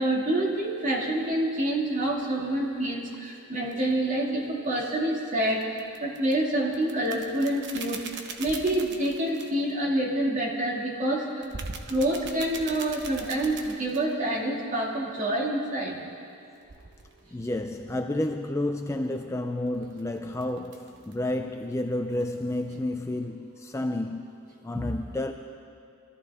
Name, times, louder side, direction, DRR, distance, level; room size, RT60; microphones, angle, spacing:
voice 1, 0.0-11.5 11.9-16.0 24.7-24.9, right 1 dB, 35° right, -2 dB, 2.3 m, -27 dB
sound 1, 3.7-3.9 5.6-6.3 6.7-9.7 11.4-14.1 16.6-17.2 19.7-21.3 21.7-21.8 22.1-22.4, right 4 dB, 55° right, 1.0 m, -41 dB
voice 2, 17.3-24.3 24.6-25.3, left 1 dB, 15° left, 5 dB, 0.4 m, -30 dB
23.0 x 14.0 x 3.6 m, 2.4 s
head